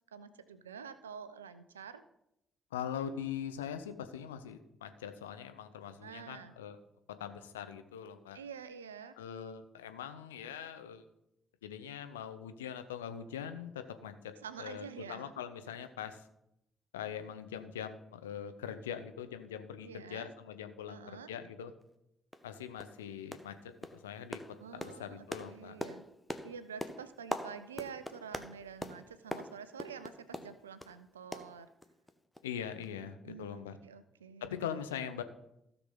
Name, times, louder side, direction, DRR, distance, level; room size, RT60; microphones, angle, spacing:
voice 1, 0.1-2.0 6.0-6.5 8.3-9.1 14.4-15.3 19.8-20.3 20.9-21.3 24.6-26.0 26.4-31.7 33.3-34.7, right 7 dB, 80° right, 13 dB, 0.5 m, -48 dB
voice 2, 2.7-6.8 7.2-8.4 9.2-11.0 11.6-16.2 16.9-21.7 22.4-24.4 24.7-25.8 32.4-33.8 34.5-35.2, left 8 dB, 75° left, 9 dB, 0.7 m, -42 dB
sound 1, 21.8-21.9 22.3-22.5 22.8-23.0 23.3-23.6 23.8-31.0 31.3-32.1 32.3-32.5 32.8-32.9, left 1 dB, 10° left, 1.1 m, -43 dB
15.5 x 6.0 x 3.8 m, 0.83 s
figure-of-eight pair, 40°, 0 cm